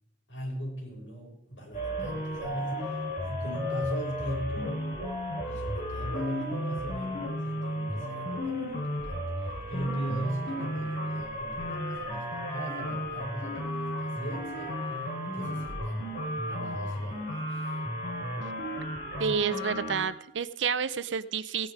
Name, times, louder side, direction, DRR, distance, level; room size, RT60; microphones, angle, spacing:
voice 1, 0.3-4.8 5.4-14.9 15.2-16.1 16.4-17.6, right 1 dB, 85° left, -1 dB, 5.9 m, -39 dB
sound 1, 1.7-20.0, equal, 45° left, 5.8 m, -33 dB
voice 2, 19.2-21.7, right 6 dB, 80° right, 15 dB, 0.7 m, -29 dB
16.5 x 10.0 x 4.8 m, 0.75 s
head